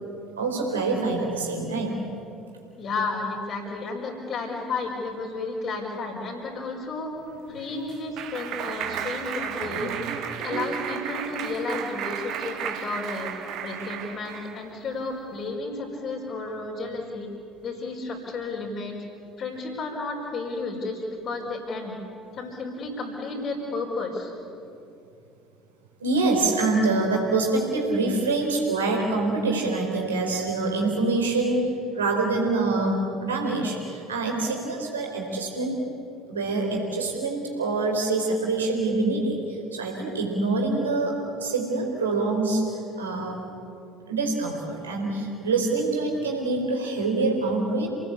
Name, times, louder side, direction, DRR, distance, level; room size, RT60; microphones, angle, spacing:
voice 1, 0.4-2.0 26.0-35.8 36.3-43.5 44.1-47.9, right 3 dB, 75° right, 0 dB, 4.4 m, -25 dB
voice 2, 2.8-7.1 7.5-9.9 10.4-13.3 13.6-17.3 17.6-19.0 19.4-22.0 22.3-24.3, left 3 dB, 45° left, -5 dB, 5.0 m, -32 dB
Clapping, 7.3-14.6, right 8 dB, 50° right, 2.0 m, -33 dB
29.0 x 19.0 x 8.5 m, 2.6 s
figure-of-eight pair, 60°, 0 cm